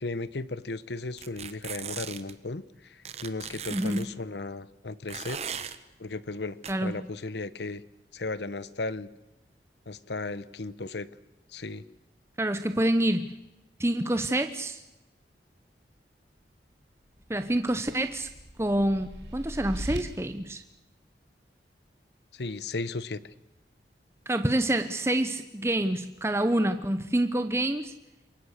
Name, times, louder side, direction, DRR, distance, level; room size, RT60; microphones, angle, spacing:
voice 1, 0.0-5.4 6.0-7.8 8.1-9.1 9.9-11.1 11.5-11.8 22.3-23.2, left 3 dB, 75° left, 17 dB, 0.9 m, -35 dB
sound 1, 1.2-2.3 3.1-4.1 5.1-5.8 6.6-6.7, right 7 dB, 35° right, 1.2 m, -38 dB
voice 2, 3.7-4.1 6.7-6.9 12.4-13.3 13.8-14.8 17.3-18.3 18.6-20.6 24.3-27.9, right 1 dB, 15° right, 9 dB, 0.8 m, -27 dB
sound 2, 17.2-20.0, equal, 85° right, 4.1 m, -39 dB
28.0 x 23.5 x 6.6 m, 0.96 s
head